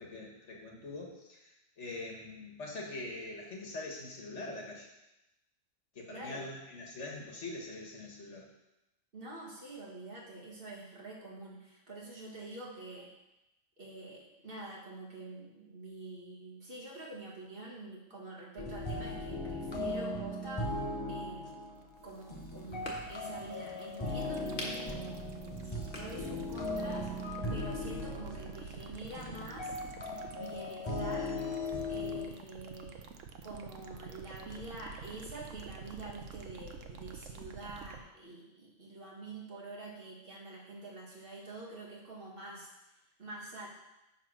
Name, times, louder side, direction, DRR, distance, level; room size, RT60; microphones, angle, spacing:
voice 1, 0.0-4.9 6.0-8.5, left 2 dB, 60° left, -1 dB, 1.7 m, -43 dB
voice 2, 6.1-6.5 9.1-13.1 13.8-20.8 21.1-21.7 22.0-29.8 30.3-31.4 31.9-33.1 33.4-42.7 43.2-43.7, right 2 dB, 45° right, -3 dB, 1.8 m, -46 dB
sound 1, 18.6-32.3, left 2 dB, 25° left, 0.8 m, -38 dB
sound 2, 21.5-38.0, right 5 dB, 70° right, 1.1 m, -48 dB
sound 3, 21.9-27.3, left 1 dB, 40° left, 1.5 m, -48 dB
9.5 x 3.9 x 6.1 m, 0.94 s
omnidirectional pair, 1.4 m